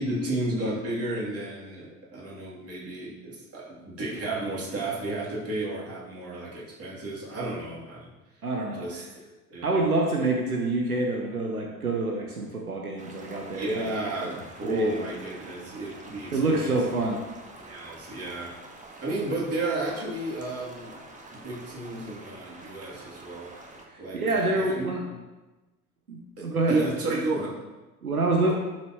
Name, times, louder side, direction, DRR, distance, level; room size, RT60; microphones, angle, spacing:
voice 1, 0.0-8.1 8.7-9.2 9.5-9.8 13.5-16.8 17.6-18.5 19.0-21.0 21.3-23.5 24.0-24.9 26.4-27.5, right 2 dB, 35° right, -5 dB, 3.1 m, -32 dB
voice 2, 8.4-8.9 9.6-13.8 14.6-14.9 16.3-17.2 23.9-25.0 26.1-26.8 28.0-28.5, right 2 dB, 85° right, 1 dB, 0.8 m, -27 dB
sound 1, 13.0-23.8, right 2 dB, 15° right, 1.5 m, -47 dB
11.5 x 6.3 x 3.1 m, 1.1 s
figure-of-eight pair, 60°, 43 cm